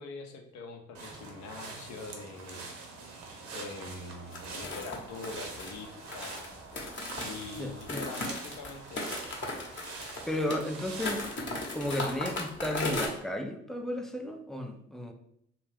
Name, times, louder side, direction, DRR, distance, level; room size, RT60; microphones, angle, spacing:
voice 1, 0.0-2.7 3.5-6.5 7.2-9.3, left 3 dB, 60° left, 3 dB, 0.6 m, -44 dB
sound 1, 0.9-11.6, right 4 dB, 60° right, 0.7 m, -45 dB
sound 2, 4.3-13.1, left 2 dB, 35° left, 0.9 m, -37 dB
voice 2, 7.6-8.0 10.3-11.2 11.6-15.1, left 1 dB, ahead, 4 dB, 0.4 m, -34 dB
2.5 x 2.3 x 3.3 m, 0.72 s
hypercardioid pair, 50°, 32 cm